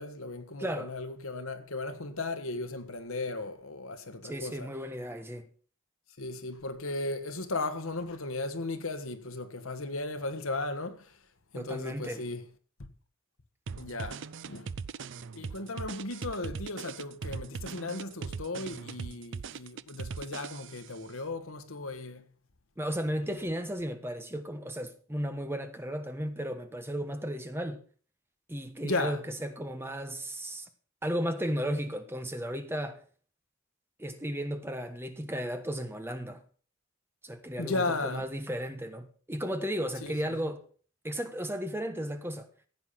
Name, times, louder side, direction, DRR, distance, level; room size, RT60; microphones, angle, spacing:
voice 1, 0.0-4.7 6.2-11.0 11.5-12.4 12.8-12.9 13.7-14.7 15.3-22.2 28.8-29.2 37.6-38.2 40.0-40.4, left 2 dB, 70° left, 1.6 m, -36 dB
voice 2, 0.6-0.9 4.2-5.5 11.5-12.2 22.8-27.8 28.5-30.7 31.0-33.0 34.0-36.4 37.2-40.6 41.0-42.5, equal, 10° right, 1.3 m, -34 dB
sound 1, 13.7-21.0, right 5 dB, 55° right, 0.5 m, -40 dB
15.5 x 8.5 x 5.8 m
head